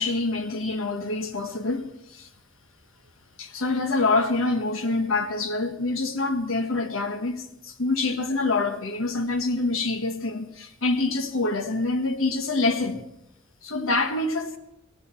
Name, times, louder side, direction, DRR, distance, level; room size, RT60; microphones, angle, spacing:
voice 1, 0.0-2.3 3.4-13.0 13.6-14.6, left 3 dB, 80° left, 1.3 m, -26 dB
16.5 x 16.0 x 4.4 m
head